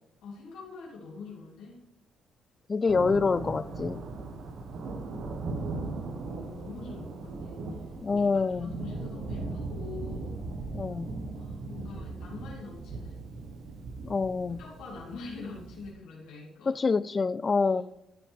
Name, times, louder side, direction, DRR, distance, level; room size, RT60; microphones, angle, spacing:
voice 1, 0.2-1.8 5.5-5.8 6.2-7.6 8.2-10.4 11.4-13.3 14.6-16.7 17.6-17.8, left 4 dB, 85° left, 2.5 m, -44 dB
voice 2, 2.7-4.1 8.0-8.7 10.7-11.1 14.0-14.6 16.7-17.8, left 4 dB, 30° left, 0.3 m, -26 dB
Thunder, 2.9-15.9, right 3 dB, 60° right, 1.3 m, -38 dB
14.0 x 5.7 x 3.6 m
cardioid pair, 120°, 0 cm